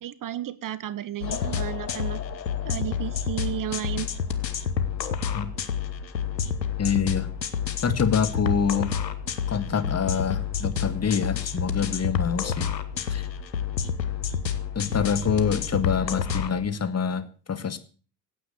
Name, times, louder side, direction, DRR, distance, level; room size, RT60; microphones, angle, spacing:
voice 1, 0.0-2.2 2.6-4.1, right 11 dB, 40° right, 19 dB, 1.0 m, -33 dB
sound 1, 1.2-16.5, left 7 dB, 90° left, 1.2 m, -29 dB
voice 2, 6.8-7.3 7.8-9.0 9.5-12.7 13.0-13.2 14.8-17.8, left 6 dB, 30° left, 11 dB, 2.0 m, -26 dB
16.5 x 8.8 x 8.2 m, 0.40 s
figure-of-eight pair, 55°, 49 cm